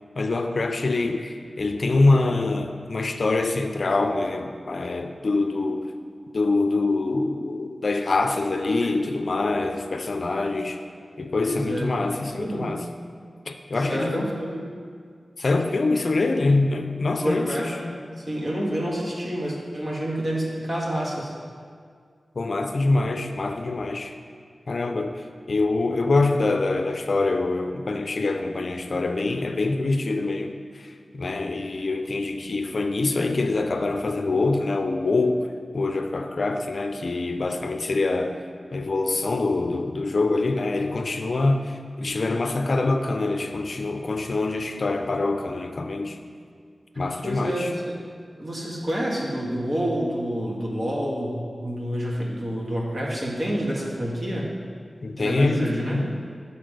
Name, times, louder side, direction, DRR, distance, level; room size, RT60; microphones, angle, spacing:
voice 1, 0.2-5.9 6.3-10.8 11.2-12.8 13.5-14.3 15.4-17.5 17.8-17.9 22.4-24.1 24.7-35.5 35.7-38.4 38.7-46.2 47.0-47.7 55.0-56.1, left 3 dB, 60° left, 6 dB, 0.5 m, -25 dB
voice 2, 11.5-12.8 13.9-14.6 17.2-17.7 18.2-21.3 47.2-48.0 48.4-54.5 55.2-56.0, equal, 40° right, -4 dB, 1.9 m, -28 dB
9.6 x 6.6 x 5.1 m, 2.1 s
wide cardioid pair, 100°, 0 cm